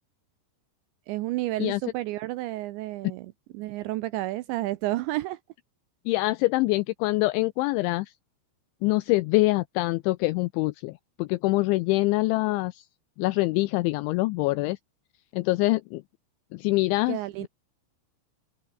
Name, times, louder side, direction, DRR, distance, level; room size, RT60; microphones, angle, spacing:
voice 1, 1.1-5.4 17.1-17.5, right 17 dB, 80° right, 2.7 m, -31 dB
voice 2, 6.1-8.1 8.8-12.9 13.2-14.8 15.3-16.0 16.5-17.5, left 21 dB, 85° left, 2.6 m, -25 dB
open air
omnidirectional pair, 5.9 m